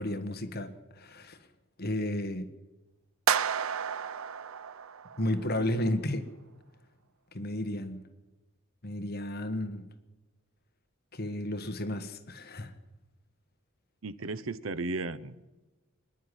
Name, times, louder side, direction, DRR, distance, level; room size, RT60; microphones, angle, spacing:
voice 1, 0.0-1.4 1.8-2.5 5.2-6.3 7.3-8.0 8.8-9.9 11.1-12.7, left 1 dB, 50° left, 9 dB, 1.5 m, -33 dB
sound 1, 3.3-5.5, right 8 dB, 90° right, 0.6 m, -31 dB
voice 2, 14.0-15.4, right 3 dB, 70° right, 15 dB, 0.9 m, -35 dB
24.0 x 11.0 x 9.9 m, 1.1 s
head